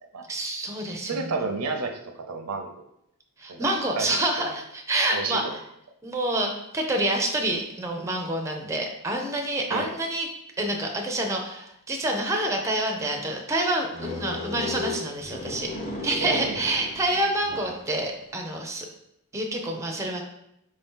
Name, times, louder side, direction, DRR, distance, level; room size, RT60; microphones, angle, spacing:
voice 1, 0.3-1.3 3.4-5.6 6.0-10.3 10.6-15.7 16.0-18.9 19.3-20.2, right 1 dB, 15° right, 2 dB, 0.5 m, -27 dB
voice 2, 1.0-2.9 3.5-3.6 3.9-4.1 4.4-4.5 5.1-5.5 9.7-9.9 16.2-16.6, right 4 dB, 80° right, 4 dB, 0.6 m, -31 dB
sound 1, 13.9-18.0, left 2 dB, 25° left, 0.7 m, -35 dB
5.0 x 2.7 x 3.6 m, 0.77 s
head